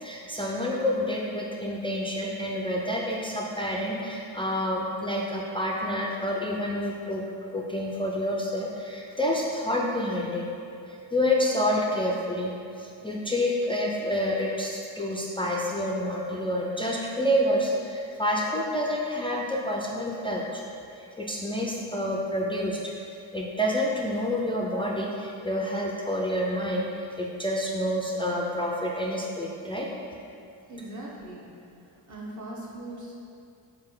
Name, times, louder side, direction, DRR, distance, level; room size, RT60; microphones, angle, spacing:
voice 1, 0.0-7.2 7.5-10.5 10.9-20.6 21.0-22.9 23.3-29.9, left 1 dB, 15° left, -3 dB, 0.3 m, -28 dB
voice 2, 30.7-31.5 32.1-33.1, right 1 dB, 40° right, -3 dB, 1.0 m, -39 dB
3.8 x 3.2 x 3.7 m, 2.6 s
supercardioid pair, 65°, 46 cm